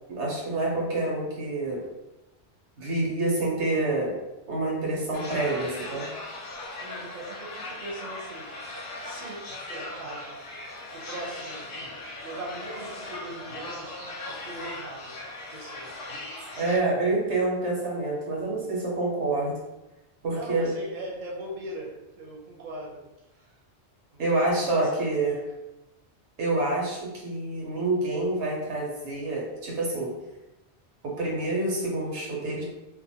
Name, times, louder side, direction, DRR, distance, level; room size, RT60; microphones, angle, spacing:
voice 1, 0.1-1.8 2.8-4.2 4.5-6.1 16.6-19.5 20.2-20.7 24.2-25.3 26.4-30.1 31.0-32.6, right 2 dB, 90° right, -3 dB, 1.1 m, -27 dB
sound 1, 5.1-16.8, left 2 dB, 60° left, 0.7 m, -39 dB
voice 2, 6.8-9.4 9.7-10.4 11.0-11.7 12.2-14.0 14.4-15.1 15.5-16.0 20.3-23.0 23.4-23.5 24.1-25.4, right 1 dB, 50° right, -3 dB, 0.7 m, -40 dB
2.5 x 2.1 x 2.7 m, 0.98 s
omnidirectional pair, 1.1 m